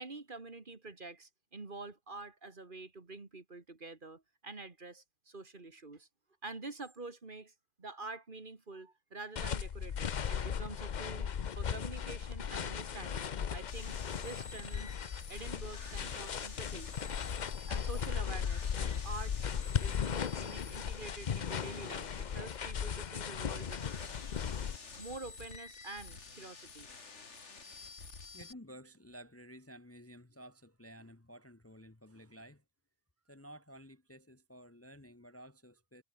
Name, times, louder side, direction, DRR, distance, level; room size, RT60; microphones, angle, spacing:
voice 1, 0.0-6.1 6.4-11.3 11.6-15.0 15.3-16.9 17.7-19.4 19.8-23.8 25.0-26.9, right 3 dB, 40° right, 2.2 m, -47 dB
sound 1, 9.4-24.8, left 7 dB, 45° left, 0.7 m, -37 dB
sound 2, 13.7-28.5, left 4 dB, 65° left, 2.5 m, -50 dB
voice 2, 28.3-32.6 33.2-36.0, equal, 10° left, 1.1 m, -53 dB
omnidirectional pair, 1.3 m